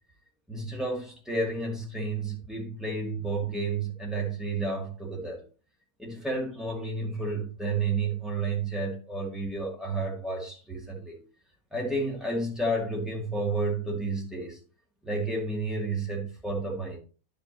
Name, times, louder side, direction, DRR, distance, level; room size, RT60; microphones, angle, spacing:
voice 1, 0.5-5.4 6.0-11.2 11.7-14.6 15.0-17.0, right 3 dB, ahead, 2.5 m, -31 dB
10.5 x 5.5 x 2.9 m
omnidirectional pair, 1.5 m